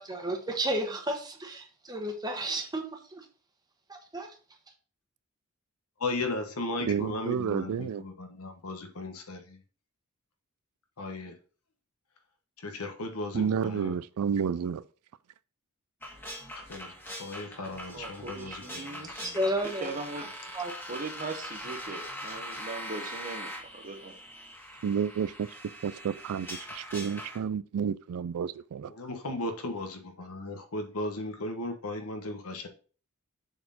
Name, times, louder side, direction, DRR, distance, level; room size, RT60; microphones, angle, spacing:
voice 1, 0.0-2.9 3.9-4.3 19.2-20.3 20.5-20.7, right 1 dB, 20° right, 1.2 m, -32 dB
voice 2, 6.0-9.6 11.0-11.3 12.6-14.0 16.5-16.9 17.2-19.3 20.6-20.7 28.9-32.7, left 2 dB, 85° left, 1.2 m, -36 dB
voice 3, 6.9-8.0 13.3-14.8 24.8-28.9, right 7 dB, 80° right, 0.3 m, -31 dB
sound 1, 16.0-27.4, equal, 10° left, 1.5 m, -42 dB
voice 4, 17.9-19.3 19.8-20.3 20.9-24.2, right 3 dB, 40° right, 1.1 m, -40 dB
6.9 x 4.3 x 4.1 m
head